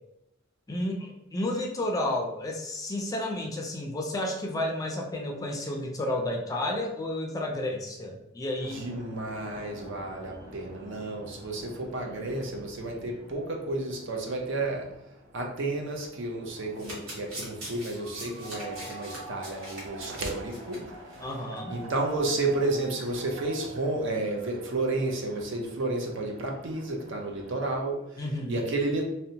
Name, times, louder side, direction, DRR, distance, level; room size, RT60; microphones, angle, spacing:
voice 1, 0.7-8.8 21.2-21.7 28.2-28.6, left 1 dB, 15° left, 0 dB, 0.3 m, -31 dB
sound 1, 8.6-27.8, right 2 dB, 45° right, 1.2 m, -47 dB
voice 2, 8.6-14.9 15.3-21.3 21.7-29.1, right 2 dB, 65° right, 1 dB, 0.5 m, -32 dB
Domestic sounds home sounds, 16.6-20.8 21.1-21.3 21.6-21.7, right 1 dB, 85° right, 1.1 m, -41 dB
2.7 x 2.1 x 2.6 m, 0.84 s
head